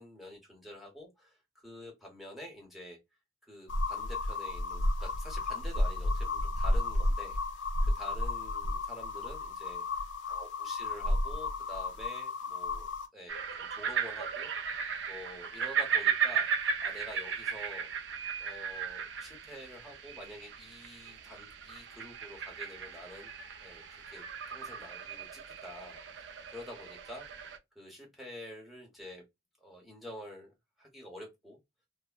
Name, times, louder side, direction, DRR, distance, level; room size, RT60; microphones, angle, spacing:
voice 1, 0.0-3.0 3.4-12.9 13.1-14.5 15.1-17.9 18.4-23.3 23.6-27.3 27.7-29.2 29.6-31.6, left 1 dB, ahead, 0.9 m, -48 dB
sound 1, 3.7-13.1, left 2 dB, 75° left, 0.5 m, -32 dB
sound 2, 13.3-27.6, right 7 dB, 70° right, 0.4 m, -36 dB
3.3 x 2.1 x 2.2 m
head